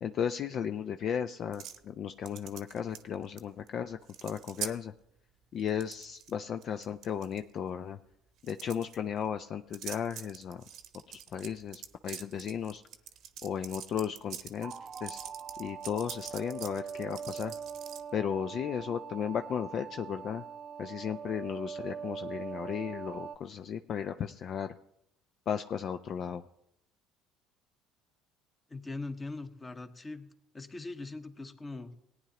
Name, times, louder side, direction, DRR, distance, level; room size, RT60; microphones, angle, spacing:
voice 1, 0.0-4.9 5.5-8.0 8.4-10.6 11.1-12.8 13.4-14.7 15.0-15.2 15.6-17.5 18.1-20.4 20.8-24.7 25.5-26.4, left 8 dB, 50° left, 9 dB, 0.4 m, -35 dB
sound 1, 1.5-1.8 2.3-3.4 3.7-3.8 4.0-4.7 5.6-6.3 6.6-7.4 8.4-9.0 9.7-18.0, right 10 dB, 60° right, 0.8 m, -44 dB
sound 2, 14.6-23.4, right 6 dB, 35° right, 0.5 m, -42 dB
voice 2, 28.7-30.3 30.5-31.9, left 3 dB, 25° left, 8 dB, 1.1 m, -41 dB
18.5 x 9.4 x 2.9 m, 0.79 s
hypercardioid pair, 65°, 0 cm